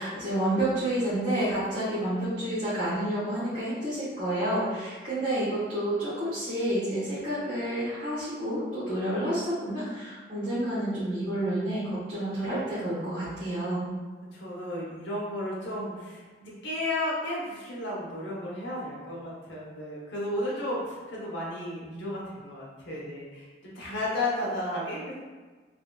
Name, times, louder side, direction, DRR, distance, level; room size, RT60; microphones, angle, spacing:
voice 1, 0.0-13.8, right 1 dB, 55° right, -14 dB, 1.4 m, -29 dB
voice 2, 14.3-25.2, left 1 dB, 80° left, -4 dB, 0.9 m, -33 dB
3.2 x 2.6 x 2.2 m, 1.4 s
head